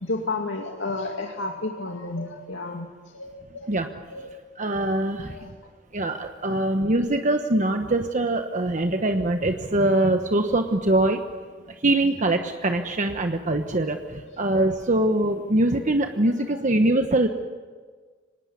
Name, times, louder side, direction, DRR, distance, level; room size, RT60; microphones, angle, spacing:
voice 1, 0.0-4.3 5.2-5.5 6.5-6.7 8.8-8.9 14.2-14.4 16.4-16.6, left 2 dB, 85° left, 1 dB, 2.3 m, -33 dB
voice 2, 4.6-5.4 5.9-11.2 11.8-17.3, right 1 dB, 40° right, 6 dB, 1.1 m, -23 dB
25.5 x 19.0 x 9.5 m, 1.5 s
head